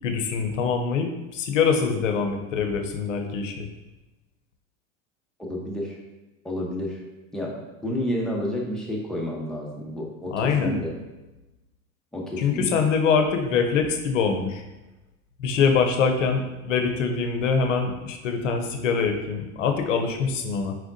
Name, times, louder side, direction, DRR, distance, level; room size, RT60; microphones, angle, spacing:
voice 1, 0.0-3.7 10.3-10.8 12.4-14.6 15.4-20.8, left 5 dB, 85° left, 5 dB, 0.7 m, -24 dB
voice 2, 5.5-6.0 6.4-7.0 7.3-11.0 12.1-12.8, left 1 dB, ahead, -3 dB, 0.8 m, -30 dB
4.6 x 3.5 x 2.6 m, 1.0 s
hypercardioid pair, 105°, 37 cm